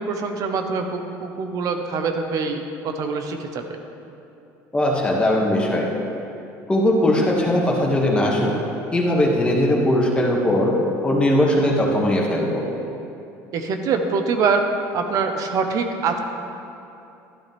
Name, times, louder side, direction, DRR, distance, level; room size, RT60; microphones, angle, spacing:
voice 1, 0.0-3.6 13.5-14.6 14.9-16.2, right 5 dB, 55° right, 5 dB, 1.0 m, -24 dB
voice 2, 4.7-5.9 6.7-8.6 8.9-10.7 11.0-12.6, left 1 dB, 15° left, -3 dB, 2.0 m, -19 dB
12.0 x 11.5 x 3.5 m, 2.8 s
supercardioid pair, 105°, 7 cm